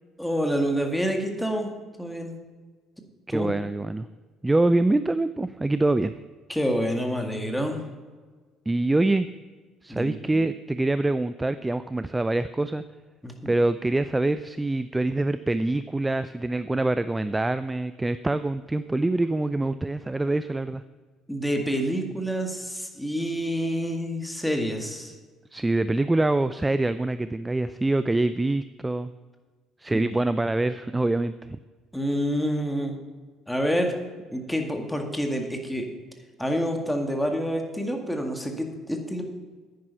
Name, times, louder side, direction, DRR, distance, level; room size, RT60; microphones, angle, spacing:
voice 1, 0.2-1.7 2.0-2.3 3.3-3.5 6.5-7.8 9.9-10.4 13.2-13.5 21.3-25.1 29.9-30.1 31.9-33.0 33.5-34.0 34.3-35.9 36.4-39.2, equal, 5° left, 3 dB, 2.0 m, -28 dB
voice 2, 3.3-4.1 4.4-6.1 8.7-9.3 9.8-12.8 13.5-20.8 25.5-29.1 29.8-31.6, right 2 dB, 15° right, 13 dB, 0.4 m, -25 dB
9.8 x 9.5 x 5.6 m, 1.4 s
figure-of-eight pair, 50°, 0 cm